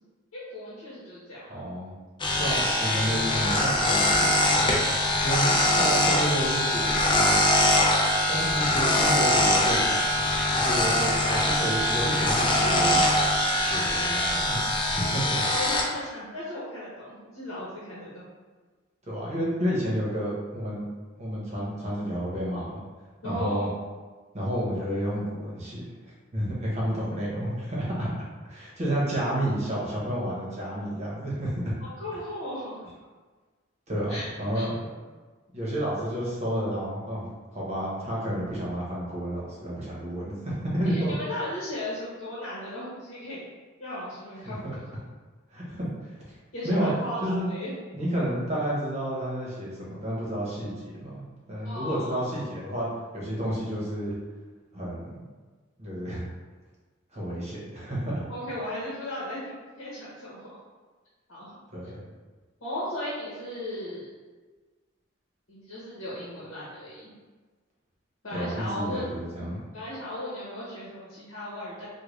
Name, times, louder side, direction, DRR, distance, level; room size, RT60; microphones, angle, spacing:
voice 1, 0.3-1.6 7.8-8.6 10.7-11.6 14.9-18.2 23.2-23.7 31.8-32.8 34.1-34.3 34.5-34.7 40.8-43.4 43.8-44.7 46.5-47.7 51.6-52.3 58.3-60.6 61.3-61.6 62.6-64.1 65.5-67.1 68.2-69.2 69.7-71.9, left 1 dB, 70° left, -8 dB, 0.9 m, -36 dB
voice 2, 1.5-1.9 2.4-4.8 5.2-7.3 8.3-14.6 14.9-15.4 19.0-20.8 21.2-22.8 23.2-23.7 24.3-25.8 26.3-28.1 28.4-31.6 33.9-34.9 35.5-41.1 44.4-44.7 45.5-46.1 46.6-46.9 47.2-47.5 47.9-52.9 53.1-54.1 54.7-55.2 55.8-56.3 57.1-58.2 61.7-62.0 68.3-69.6, equal, 35° right, -7 dB, 1.0 m, -31 dB
sound 1, 2.2-15.8, left 1 dB, 25° left, 0.4 m, -23 dB
3.6 x 2.3 x 3.2 m, 1.4 s
head